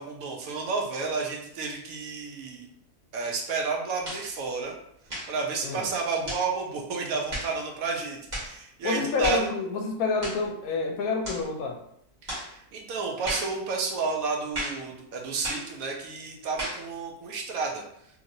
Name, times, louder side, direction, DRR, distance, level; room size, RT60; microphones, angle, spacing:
voice 1, 0.0-2.7 3.1-4.7 5.3-9.5 12.2-17.8, right 4 dB, 70° right, 1 dB, 1.0 m, -31 dB
sound 1, 4.0-4.3 5.1-5.4 6.2-6.5 7.3-7.5 8.3-8.5 9.2-9.5 10.2-10.5 11.2-11.5 12.3-12.5 13.2-13.5 14.5-14.8 15.4-15.7 16.6-16.8, right 1 dB, 30° right, 1.2 m, -34 dB
voice 2, 8.8-11.8, left 3 dB, 70° left, 3 dB, 0.9 m, -28 dB
2.9 x 2.8 x 2.6 m, 0.73 s
omnidirectional pair, 1.7 m